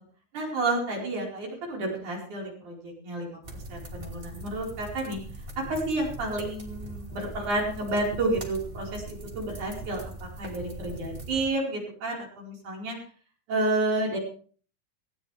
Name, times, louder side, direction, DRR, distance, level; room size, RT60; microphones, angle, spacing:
voice 1, 0.3-3.4 3.7-5.2 5.6-13.0 13.5-14.2, right 2 dB, 55° right, -1 dB, 6.0 m, -30 dB
sound 1, 3.4-11.5, right 2 dB, 20° right, 1.9 m, -41 dB
18.0 x 16.5 x 3.4 m, 0.42 s
omnidirectional pair, 4.3 m